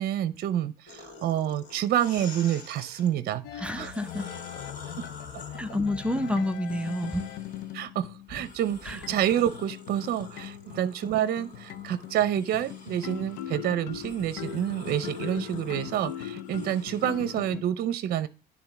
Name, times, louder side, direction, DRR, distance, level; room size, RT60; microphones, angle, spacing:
voice 1, 0.0-3.9 7.7-18.3, right 11 dB, 60° right, 0.6 m, -28 dB
sound 1, 0.9-3.1 3.7-7.8 8.3-17.4, left 3 dB, 45° left, 2.8 m, -48 dB
sound 2, 3.4-17.6, left 11 dB, 85° left, 0.7 m, -40 dB
voice 2, 3.6-4.3 5.5-7.3 8.9-9.0, left 1 dB, 5° right, 0.7 m, -29 dB
10.5 x 3.6 x 5.8 m
cardioid pair, 110°, 17 cm